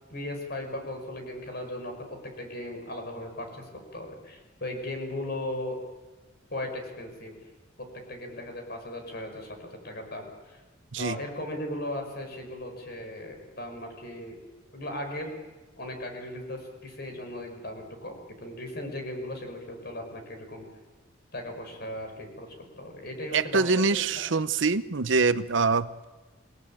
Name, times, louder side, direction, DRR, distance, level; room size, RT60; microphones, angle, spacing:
voice 1, 0.1-5.8 6.5-7.4 7.8-10.6 11.0-14.4 14.7-15.3 15.8-20.7 21.3-23.9 24.2-24.3, left 1 dB, 55° left, 4 dB, 5.5 m, -37 dB
voice 2, 23.3-26.0, right 4 dB, 65° right, 14 dB, 0.8 m, -24 dB
27.0 x 18.5 x 8.9 m, 1.3 s
head